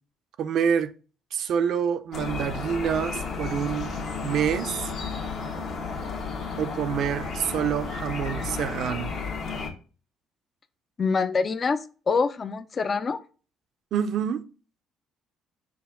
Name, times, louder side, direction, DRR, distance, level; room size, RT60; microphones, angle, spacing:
voice 1, 0.4-0.9 1.3-3.9 4.2-4.9 6.6-9.1 13.9-14.4, right 8 dB, 65° right, 0.5 m, -27 dB
sound 1, 2.1-9.7, left 4 dB, 65° left, 1.2 m, -33 dB
voice 2, 11.0-11.8 12.1-13.2, left 4 dB, 40° left, 0.4 m, -25 dB
5.9 x 2.2 x 3.6 m
supercardioid pair, 70°, 0 cm